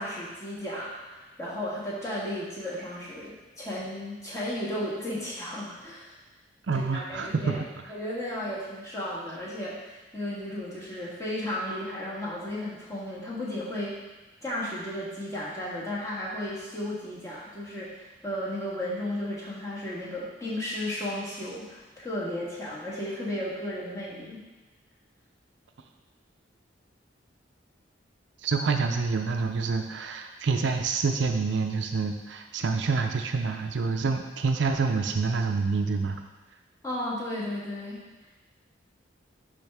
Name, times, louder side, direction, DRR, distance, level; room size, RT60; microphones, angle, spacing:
voice 1, 0.0-6.1 6.7-7.6 7.9-13.9 14.4-24.4 36.8-38.0, left 1 dB, 15° left, -7 dB, 1.5 m, -34 dB
voice 2, 6.7-7.6 28.4-36.2, right 4 dB, 70° right, 5 dB, 0.5 m, -27 dB
10.5 x 3.5 x 3.4 m, 1.1 s
head